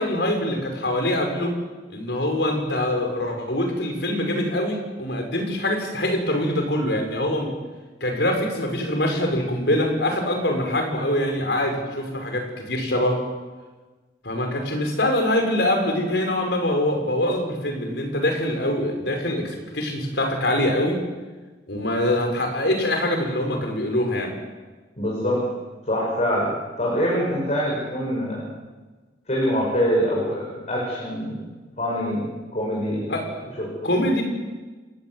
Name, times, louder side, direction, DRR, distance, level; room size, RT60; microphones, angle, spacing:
voice 1, 0.0-1.5 1.9-7.5 8.0-13.2 14.2-21.0 21.7-24.3 33.1-33.5 33.8-34.2, left 1 dB, 70° left, 3 dB, 5.8 m, -24 dB
voice 2, 25.0-25.4 25.8-28.5 29.3-31.4 31.8-33.1 33.6-33.9, equal, 40° left, -4 dB, 6.5 m, -24 dB
28.5 x 18.5 x 8.0 m, 1.3 s
head